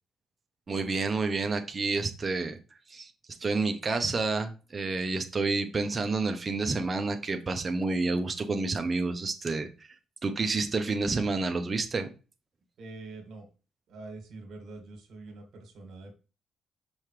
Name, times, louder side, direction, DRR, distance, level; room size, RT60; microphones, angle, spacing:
voice 1, 0.7-2.6 2.9-3.1 3.4-9.9 10.2-12.1, right 3 dB, 30° right, 6 dB, 0.9 m, -29 dB
voice 2, 12.8-13.5 13.9-16.2, right 3 dB, 70° right, 5 dB, 1.9 m, -45 dB
5.6 x 5.6 x 3.3 m, 0.33 s
cardioid pair, 90°, 0 cm